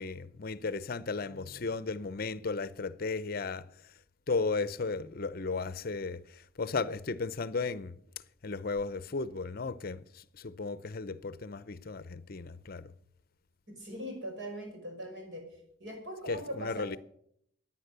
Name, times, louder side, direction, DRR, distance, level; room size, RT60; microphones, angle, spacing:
voice 1, 0.0-3.6 4.3-8.0 8.4-12.9 16.3-17.0, left 4 dB, 50° left, 0.6 m, -35 dB
voice 2, 13.7-15.4 15.8-17.0, right 1 dB, 65° right, 5.8 m, -41 dB
16.5 x 9.7 x 6.7 m
head